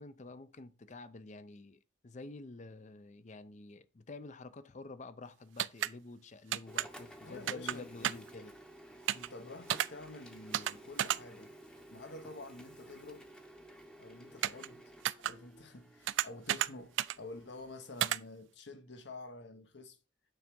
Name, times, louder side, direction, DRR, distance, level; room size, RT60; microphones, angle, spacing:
voice 1, 0.0-8.5, left 3 dB, 40° left, 0.5 m, -49 dB
sound 1, 5.6-5.9 6.5-6.9 7.5-7.7 8.0-8.3 9.1-9.3 9.7-9.9 10.5-10.7 11.0-11.2 14.4-14.7 15.0-15.3 16.1-16.7 17.0-17.2 18.0-18.2, right 12 dB, 75° right, 0.3 m, -31 dB
Printer, 6.7-17.9, right 1 dB, 5° left, 0.8 m, -54 dB
voice 2, 7.2-8.5 9.1-11.5 11.9-13.3 14.0-14.9 15.2-20.0, left 2 dB, 65° left, 1.1 m, -49 dB
9.1 x 3.4 x 5.2 m
head